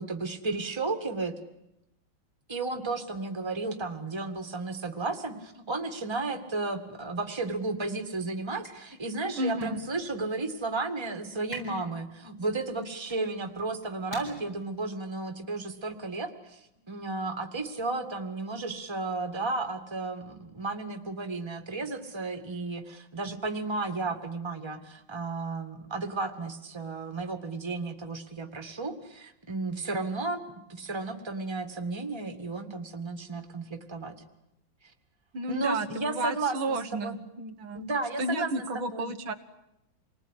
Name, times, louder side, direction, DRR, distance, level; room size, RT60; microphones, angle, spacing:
voice 1, 0.0-1.3 2.5-16.6 16.9-34.2 35.5-37.2 37.7-39.1, right 3 dB, 15° right, 6 dB, 1.9 m, -33 dB
sound 1, 7.0-15.8, equal, 65° left, 8.4 m, -50 dB
voice 2, 9.4-9.8 35.3-37.8 38.2-39.3, right 2 dB, 80° right, 6 dB, 2.3 m, -32 dB
28.0 x 20.5 x 10.0 m, 0.86 s
omnidirectional pair, 2.2 m